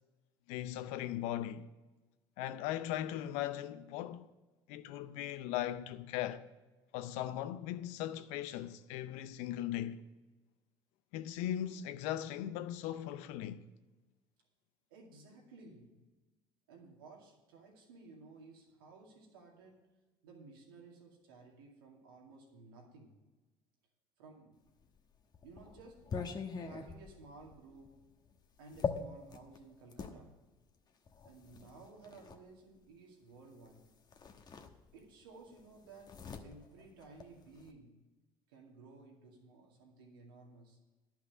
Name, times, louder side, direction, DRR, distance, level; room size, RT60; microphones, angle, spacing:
voice 1, 0.5-1.7 2.4-4.3 4.7-6.4 6.9-10.0 11.1-13.6, left 12 dB, 75° left, 0.6 m, -38 dB
voice 2, 14.9-16.0 16.7-19.9 20.2-23.2 24.2-24.6 25.4-26.1 26.6-28.1 28.6-30.4 31.2-33.9 34.9-38.0 38.5-40.8, right 3 dB, 90° right, 2.3 m, -56 dB
sound 1, 24.8-30.2 31.1-32.4 33.6-33.8 34.1-35.2 35.5-37.7, left 5 dB, 35° left, 1.1 m, -43 dB
11.0 x 5.9 x 8.1 m
hypercardioid pair, 75°, 11 cm